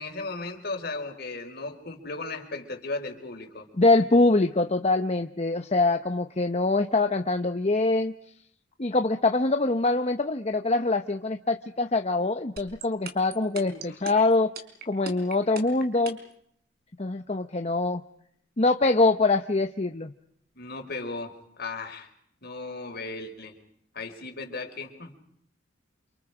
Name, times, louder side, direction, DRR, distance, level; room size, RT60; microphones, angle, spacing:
voice 1, 0.0-3.7 13.6-14.0 20.5-22.1 22.4-23.5 23.9-25.1, left 3 dB, 55° left, 4 dB, 5.0 m, -36 dB
voice 2, 3.8-8.1 8.8-14.5 14.9-16.2 17.0-18.0 18.6-20.1, left 2 dB, 35° left, 6 dB, 1.0 m, -24 dB
sound 1, 12.6-16.3, right 4 dB, 55° right, 4.7 m, -37 dB
30.0 x 28.0 x 5.1 m, 0.69 s
head